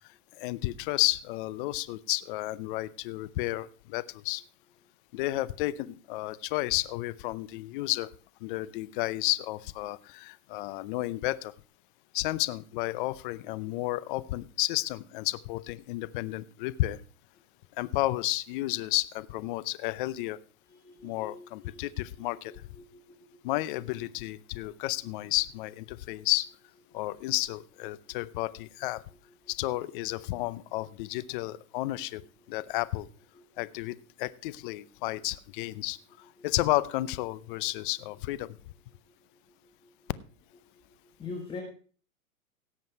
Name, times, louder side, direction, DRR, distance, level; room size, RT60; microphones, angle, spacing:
voice 1, 0.3-4.4 5.1-8.1 8.4-11.5 12.1-17.0 17.8-20.4 21.0-22.7 23.4-26.5 26.9-29.0 29.5-32.2 32.5-33.1 33.6-38.6, left 18 dB, 35° left, 18 dB, 0.6 m, -32 dB
voice 2, 20.7-21.9 22.4-23.4 28.0-28.2 33.3-33.6 39.5-40.1 40.9-41.6, left 4 dB, 10° left, 2 dB, 1.6 m, -45 dB
17.0 x 7.5 x 4.6 m, 0.41 s
hypercardioid pair, 140°, 43 cm